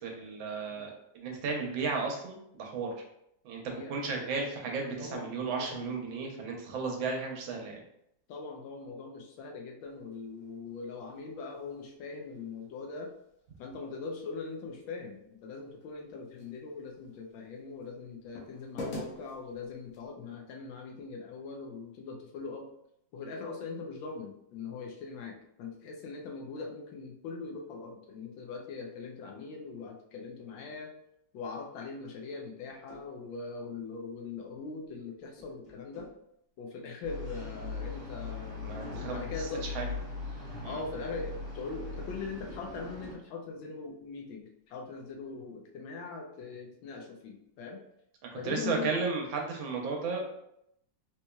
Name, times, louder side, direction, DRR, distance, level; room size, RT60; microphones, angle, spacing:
voice 1, 0.0-2.9 3.4-7.8 38.6-39.2 39.7-39.9 40.6-40.8 48.4-50.3, right 4 dB, 85° right, 1 dB, 1.5 m, -34 dB
voice 2, 3.7-4.0 5.0-6.0 8.3-13.1 13.6-22.7 23.1-30.9 31.3-36.1 36.6-38.8 39.1-39.7 40.6-47.8 48.3-48.9, left 4 dB, 85° left, 1 dB, 1.4 m, -41 dB
sound 1, 9.8-20.1, left 1 dB, 55° left, 1.0 m, -49 dB
sound 2, 32.9-33.1 34.6-35.0 35.4-36.2 38.7-39.5 42.3-43.3, equal, 40° left, 0.4 m, -52 dB
sound 3, 37.0-43.1, left 3 dB, 55° right, 1.6 m, -40 dB
4.1 x 3.0 x 2.3 m, 0.76 s
omnidirectional pair, 2.1 m